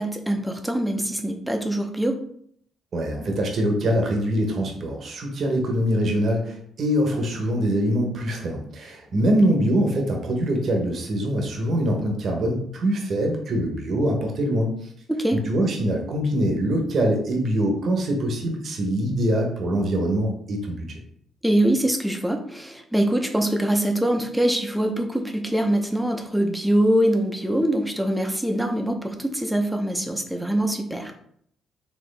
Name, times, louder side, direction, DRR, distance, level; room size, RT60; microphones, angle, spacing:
voice 1, 0.0-2.2 15.1-15.4 21.4-31.1, right 1 dB, 5° right, 5 dB, 0.7 m, -23 dB
voice 2, 2.9-14.9 15.3-21.0, equal, 55° right, 2 dB, 1.0 m, -24 dB
4.4 x 2.8 x 3.3 m, 0.66 s
cardioid pair, 90°, 0 cm